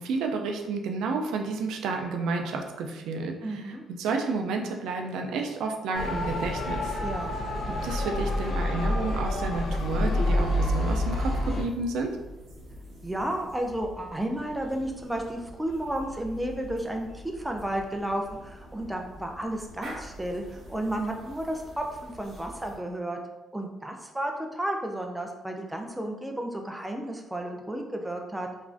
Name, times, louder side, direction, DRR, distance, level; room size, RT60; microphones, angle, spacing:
voice 1, 0.0-7.0 7.7-12.2, right 4 dB, 85° right, 3 dB, 0.3 m, -31 dB
voice 2, 3.4-3.8 7.0-7.4 13.0-23.2 23.5-28.5, right 1 dB, 5° right, 2 dB, 0.4 m, -32 dB
Motor vehicle (road) / Siren, 5.9-11.6, left 1 dB, 60° left, 0.5 m, -27 dB
sound 1, 9.5-22.8, equal, 65° right, 0.8 m, -46 dB
3.0 x 2.5 x 2.4 m, 1.1 s
cardioid pair, 90°, 0 cm